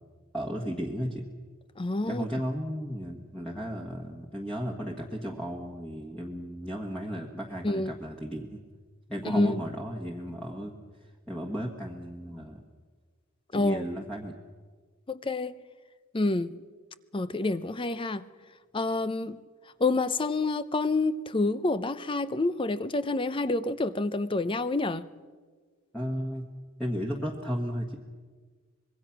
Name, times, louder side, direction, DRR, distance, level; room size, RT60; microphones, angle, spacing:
voice 1, 0.3-1.2 2.1-8.6 9.1-10.7 11.3-12.6 13.5-14.3 25.9-26.5 26.8-28.0, equal, 5° left, 1.5 m, -34 dB
voice 2, 1.8-2.3 7.6-7.9 9.2-9.6 13.5-13.8 15.1-15.5 16.1-16.5 17.1-18.2 18.7-19.4 19.8-25.1, left 2 dB, 25° left, 0.6 m, -28 dB
25.0 x 21.5 x 6.0 m
head